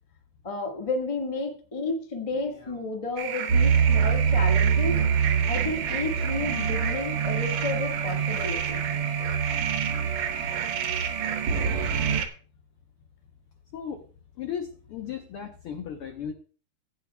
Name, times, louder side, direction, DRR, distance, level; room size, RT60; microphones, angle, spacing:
voice 1, 0.4-5.0 5.5-8.9, left 3 dB, 45° left, 1 dB, 0.4 m, -32 dB
sound 1, 3.2-12.3, right 8 dB, 70° right, 2.4 m, -32 dB
sound 2, 3.5-12.2, right 6 dB, 55° right, 1.8 m, -26 dB
voice 2, 13.7-14.0 14.4-16.3, left 8 dB, 80° left, 5 dB, 1.2 m, -36 dB
16.0 x 9.1 x 2.3 m, 0.39 s
omnidirectional pair, 3.7 m